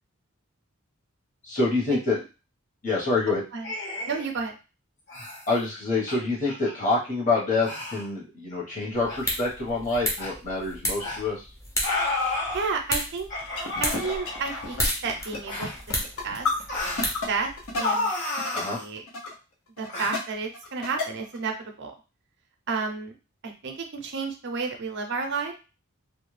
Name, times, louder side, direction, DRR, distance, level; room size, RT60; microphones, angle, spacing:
voice 1, 1.4-2.2 2.8-3.4 5.5-11.5 18.5-18.8, left 3 dB, 35° left, -4 dB, 1.1 m, -26 dB
sound 1, 3.6-4.3 5.1-5.4 6.1-6.2 6.4-6.7 7.6-8.0 9.1-9.2 10.2-10.3 11.0-11.2 11.8-12.6 13.3-14.8 15.5-15.8 16.7-17.1 17.8-18.8 19.9-20.1, left 2 dB, 55° left, 1.1 m, -31 dB
voice 2, 4.1-4.6 12.5-13.3 13.8-15.9 16.2-16.5 17.3-18.1 18.5-19.0 19.8-21.9 22.7-23.2 23.4-25.5, right 4 dB, 55° right, 3 dB, 0.5 m, -31 dB
sound 2, 8.9-17.8, equal, 15° left, 0.6 m, -33 dB
sound 3, 13.5-18.7 19.0-19.3 19.8-20.2 20.5-21.4, left 3 dB, 80° left, 0.7 m, -32 dB
2.4 x 2.2 x 3.1 m, 0.31 s
head